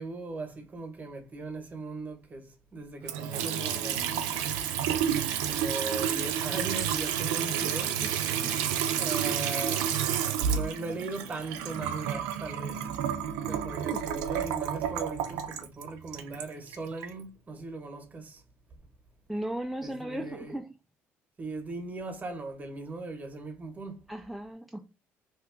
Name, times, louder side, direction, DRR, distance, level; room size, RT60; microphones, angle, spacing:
voice 1, 0.0-4.1 5.4-8.1 9.0-9.9 10.4-12.9 13.4-18.4 19.8-20.5 21.4-24.0, right 3 dB, 30° right, 1.0 m, -38 dB
Water tap faucet / Sink (filling or washing) / Trickle dribble, 3.0-17.1, right 9 dB, 90° right, 0.4 m, -30 dB
voice 2, 19.3-20.7 24.1-24.9, right 1 dB, ahead, 0.3 m, -36 dB
2.8 x 2.2 x 3.6 m
supercardioid pair, 80°, 5 cm